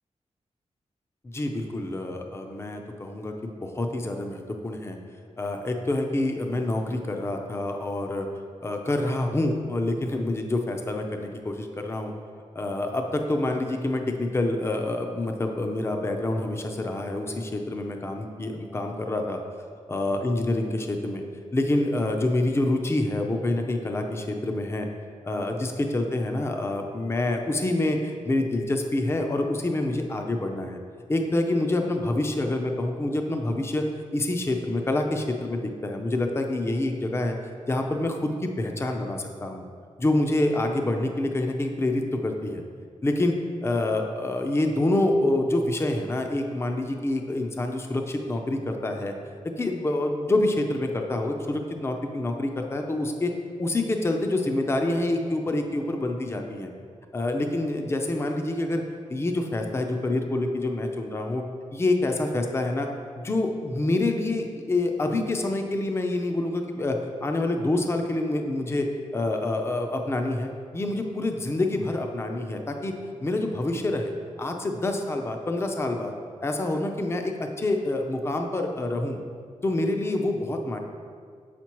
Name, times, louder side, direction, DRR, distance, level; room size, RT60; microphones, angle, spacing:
voice 1, 1.3-5.0 5.4-8.3 8.6-12.1 12.5-19.4 19.9-21.2 21.5-24.9 25.2-30.8 31.1-33.8 34.1-37.4 37.7-39.6 40.0-42.6 43.0-43.4 43.6-49.1 49.6-53.3 53.6-56.7 57.1-58.8 59.1-61.4 61.7-62.9 63.2-68.9 69.1-72.9 73.2-74.1 74.4-76.1 76.4-79.2 79.6-80.8, left 2 dB, 20° left, 4 dB, 0.5 m, -27 dB
7.5 x 5.8 x 3.0 m, 2.1 s
wide cardioid pair, 120°, 12 cm